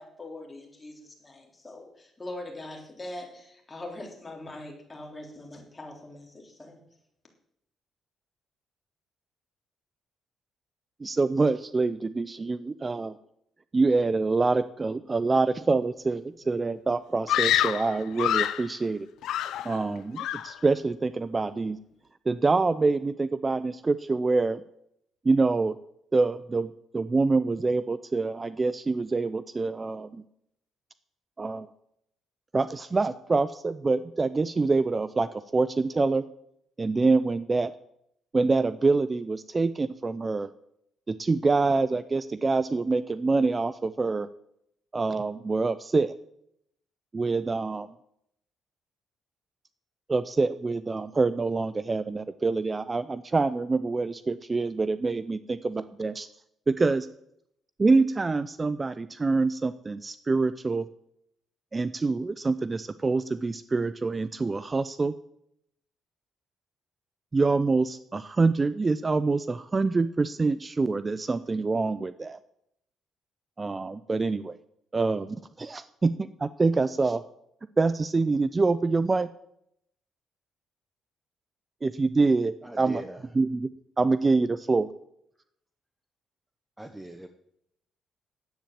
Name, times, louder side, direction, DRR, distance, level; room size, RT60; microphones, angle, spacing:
voice 1, 0.0-6.8, left 1 dB, 20° left, 1 dB, 3.6 m, -42 dB
voice 2, 11.0-13.2 13.7-19.1 19.6-21.8 22.3-24.6 25.2-25.8 26.1-30.2 31.4-31.7 32.5-36.2 36.8-37.7 38.3-40.5 41.1-44.3 44.9-46.1 47.1-47.9 50.1-56.3 56.7-57.1 57.8-60.9 61.7-65.1 67.3-72.4 73.6-74.6 74.9-77.2 77.8-79.3 81.8-83.0 83.3-83.7 84.0-84.9, right 3 dB, 25° right, 15 dB, 0.5 m, -26 dB
Screaming, 17.3-18.7 19.2-19.9 20.2-20.6, left 12 dB, 85° left, 0.6 m, -27 dB
voice 3, 82.6-83.3 86.8-87.3, right 1 dB, 10° right, 8 dB, 0.9 m, -41 dB
10.5 x 8.4 x 7.4 m, 0.75 s
cardioid pair, 90°, 0 cm